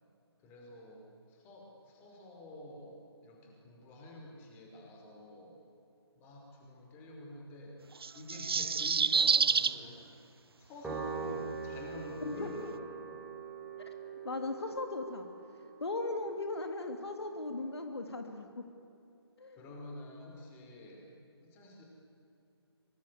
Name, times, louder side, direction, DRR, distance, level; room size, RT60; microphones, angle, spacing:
voice 1, 0.4-5.6 6.1-7.8 8.1-10.0 10.6-13.2 19.5-21.1 21.4-21.8, left 1 dB, 15° left, 0 dB, 5.1 m, -48 dB
sound 1, 8.0-9.8, right 5 dB, 60° right, 0.9 m, -27 dB
Piano, 10.8-17.4, right 5 dB, 5° right, 3.4 m, -43 dB
voice 2, 12.2-12.5 14.0-15.3 15.8-18.6 19.4-19.6, left 2 dB, 70° left, 5 dB, 2.8 m, -38 dB
25.0 x 24.0 x 8.4 m, 2.7 s
figure-of-eight pair, 150°, 14 cm